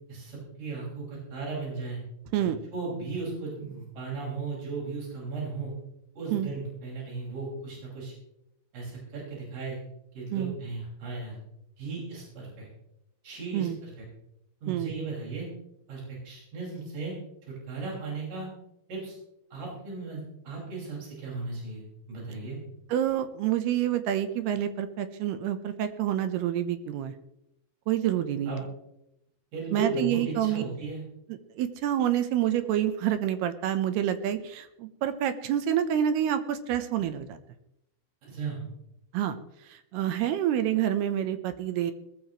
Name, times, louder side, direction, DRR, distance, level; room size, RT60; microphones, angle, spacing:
voice 1, 0.1-2.0 2.4-5.7 6.2-8.1 8.7-9.8 10.1-11.4 11.8-12.7 13.2-13.9 14.6-15.5 15.9-17.1 17.7-18.5 18.9-19.2 19.5-21.8 22.1-22.6 28.5-28.6 29.5-31.0 38.2-38.6, right 3 dB, 50° right, -4 dB, 7.1 m, -36 dB
voice 2, 22.9-27.1 27.9-28.6 29.7-30.6 31.3-37.4 39.1-39.4 39.9-41.9, right 10 dB, 80° right, 10 dB, 2.8 m, -28 dB
20.0 x 14.0 x 3.1 m, 0.85 s
omnidirectional pair, 5.0 m